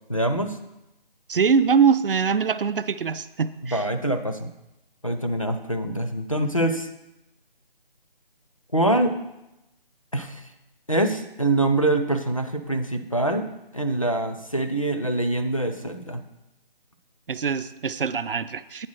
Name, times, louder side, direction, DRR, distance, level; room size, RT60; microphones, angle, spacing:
voice 1, 0.1-0.6 3.6-4.5 5.0-6.9 8.7-9.2 10.1-10.4 10.9-13.5 13.7-16.2, right 1 dB, 35° left, 6 dB, 0.4 m, -24 dB
voice 2, 1.3-3.8 17.3-18.9, right 6 dB, 65° right, 13 dB, 0.5 m, -23 dB
8.5 x 4.4 x 6.2 m, 0.92 s
figure-of-eight pair, 175°, 29 cm